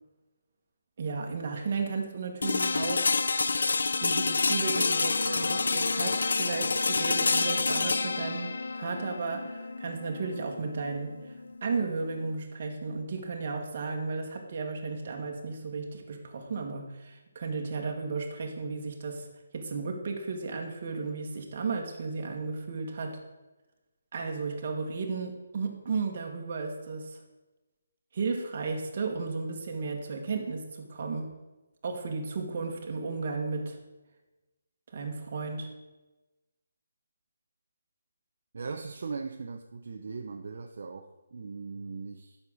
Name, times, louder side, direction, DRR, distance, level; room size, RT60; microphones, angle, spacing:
voice 1, 1.0-3.2 4.0-11.2 11.6-19.3 19.5-23.2 24.1-27.2 28.1-31.3 31.8-33.8 34.9-35.7, right 4 dB, 35° right, 2 dB, 1.6 m, -34 dB
sound 1, 2.4-12.3, left 4 dB, 75° left, 0.4 m, -28 dB
voice 2, 38.5-42.4, right 4 dB, 50° right, 4 dB, 0.7 m, -39 dB
9.6 x 6.6 x 6.2 m, 1.1 s
hypercardioid pair, 175°, 0 cm